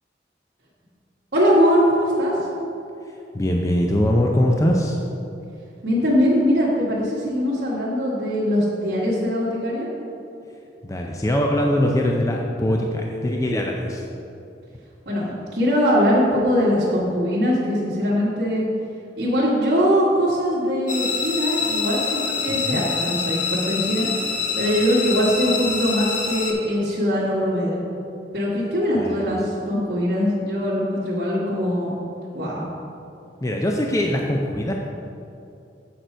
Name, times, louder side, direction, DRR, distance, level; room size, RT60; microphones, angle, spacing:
voice 1, 1.3-2.5 5.8-9.9 15.0-18.7 19.2-24.1 24.5-27.8 28.3-32.0 32.3-32.7, equal, 60° right, -10 dB, 1.5 m, -21 dB
voice 2, 3.3-5.0 10.8-14.0 22.5-22.8 29.0-29.2 33.4-34.7, left 1 dB, 20° left, 0 dB, 0.5 m, -22 dB
sound 1, 20.9-26.5, left 5 dB, 45° left, 1.0 m, -26 dB
7.7 x 6.7 x 4.5 m, 2.7 s
head